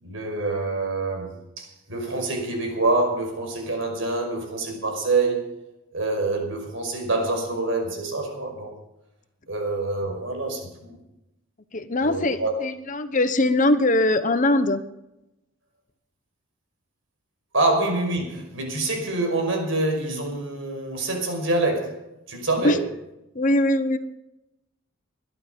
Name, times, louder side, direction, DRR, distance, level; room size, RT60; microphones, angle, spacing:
voice 1, 0.0-5.5 5.9-8.7 9.5-11.0 12.0-12.5 17.5-22.0 22.3-22.8, right 2 dB, 65° right, 5.4 m, -26 dB
voice 2, 11.7-14.8 22.6-22.8 23.3-24.0, left 1 dB, 35° left, 1.0 m, -21 dB
21.5 x 11.5 x 5.3 m
head